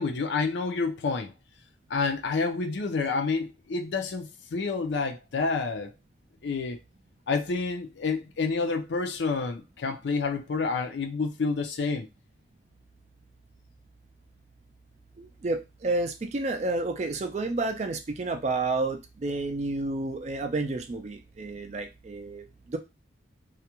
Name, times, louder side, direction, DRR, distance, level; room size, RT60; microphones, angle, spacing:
voice 1, 0.0-1.3 1.9-5.9 6.4-6.8 7.3-12.1, left 4 dB, 70° left, 0.4 m, -29 dB
voice 2, 15.2-22.8, right 2 dB, 35° right, 0.3 m, -30 dB
2.4 x 2.1 x 2.9 m
head